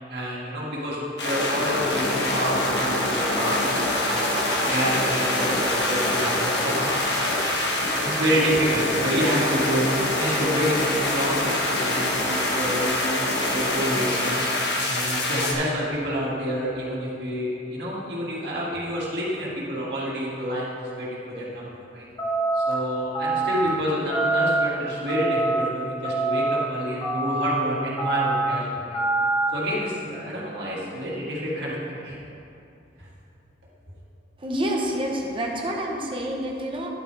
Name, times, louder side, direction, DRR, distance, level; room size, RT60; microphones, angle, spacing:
voice 1, 0.1-4.3 4.7-6.9 7.2-7.3 8.0-9.9 10.2-14.3 14.9-22.1 22.5-29.0 29.5-32.2 33.0-33.1, equal, 60° right, -6 dB, 2.2 m, -28 dB
sound 1, 1.2-15.5, left 1 dB, 65° left, 1.4 m, -25 dB
sound 2, 22.2-22.7 23.1-23.7 24.1-24.7 25.1-25.6 26.0-26.6 27.0-27.5 28.0-28.5 28.9-29.5, right 2 dB, 20° left, 1.5 m, -24 dB
voice 2, 34.4-36.9, equal, 30° right, -1 dB, 1.1 m, -28 dB
10.5 x 8.4 x 3.4 m, 2.7 s
head